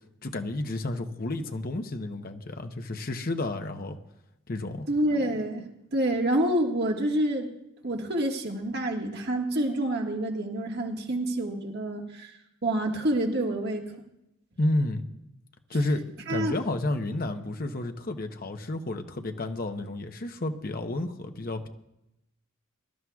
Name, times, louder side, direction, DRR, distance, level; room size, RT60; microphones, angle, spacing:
voice 1, 0.2-4.0 4.5-4.9 14.6-15.0 15.7-21.7, left 2 dB, 45° left, 6 dB, 0.9 m, -31 dB
voice 2, 4.9-7.5 7.8-12.3 12.6-13.8 16.3-16.6, right 1 dB, 55° right, 1 dB, 1.6 m, -27 dB
23.0 x 13.0 x 2.4 m, 0.85 s
head